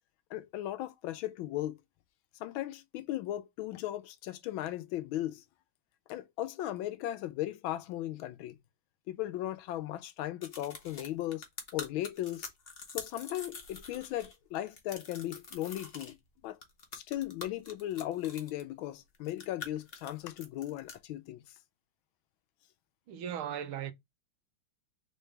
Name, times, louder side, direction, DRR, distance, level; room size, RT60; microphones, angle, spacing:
voice 1, 0.3-1.8 2.4-5.4 6.1-8.6 9.1-11.5 11.7-12.5 12.9-16.1 16.4-16.6 16.9-21.4, left 14 dB, 75° left, 1.3 m, -37 dB
sound 1, 10.4-14.4 14.7-16.1 16.6-18.6 19.1-21.0, left 4 dB, 40° left, 0.9 m, -45 dB
voice 2, 23.1-23.9, right 9 dB, 80° right, 1.5 m, -37 dB
4.2 x 3.8 x 3.2 m
omnidirectional pair, 2.3 m